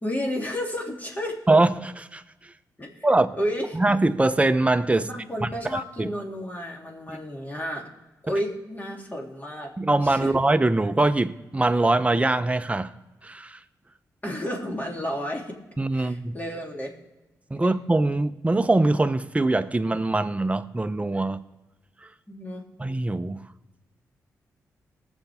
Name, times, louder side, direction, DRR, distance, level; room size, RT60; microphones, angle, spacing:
voice 1, 0.0-1.4 2.8-3.1 3.4-3.8 4.9-7.9 8.2-9.7 10.0-10.3 14.2-15.5 15.9-16.9 22.3-22.6, equal, 25° left, -1 dB, 3.2 m, -31 dB
voice 2, 1.5-2.5 3.0-3.4 3.7-5.1 5.4-6.1 7.1-7.2 9.8-12.9 13.2-13.6 15.8-16.4 17.5-21.4 22.0-22.1 22.8-23.5, right 2 dB, 20° right, 10 dB, 0.8 m, -23 dB
19.0 x 7.2 x 3.6 m, 1.1 s
supercardioid pair, 50°, 7 cm